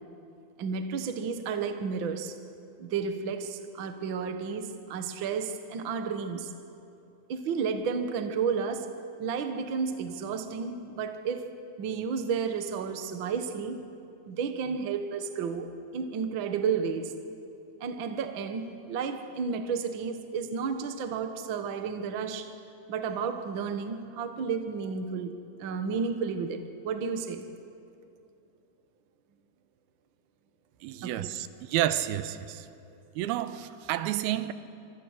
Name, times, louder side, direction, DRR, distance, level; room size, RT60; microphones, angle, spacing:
voice 1, 0.6-2.3 2.8-6.5 7.3-13.9 14.3-17.1 17.8-22.5 22.9-25.3 25.6-27.4 31.0-31.3, right 6 dB, 70° right, 1.1 m, -32 dB
voice 2, 30.8-32.7 33.2-34.5, right 13 dB, 90° right, 2.7 m, -30 dB
25.5 x 24.5 x 6.5 m
omnidirectional pair, 4.4 m